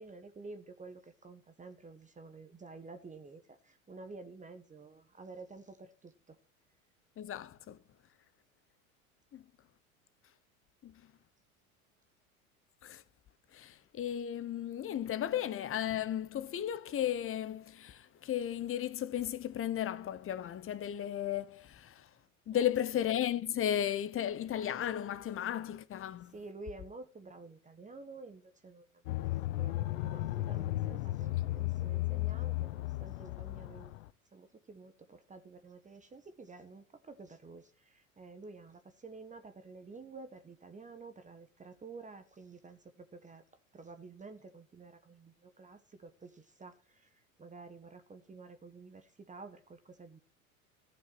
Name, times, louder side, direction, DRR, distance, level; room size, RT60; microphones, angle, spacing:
voice 1, 0.0-6.4 22.5-22.7 26.3-33.9 34.3-43.4 43.7-50.2, right 3 dB, 15° right, 1.3 m, -51 dB
voice 2, 7.2-7.8 9.3-9.4 10.8-11.1 12.8-13.0 13.5-22.1 22.5-26.3, left 10 dB, 30° left, 1.1 m, -35 dB
sound 1, 29.1-34.1, left 17 dB, 65° left, 0.8 m, -35 dB
14.5 x 6.7 x 7.7 m
hypercardioid pair, 85°, 42 cm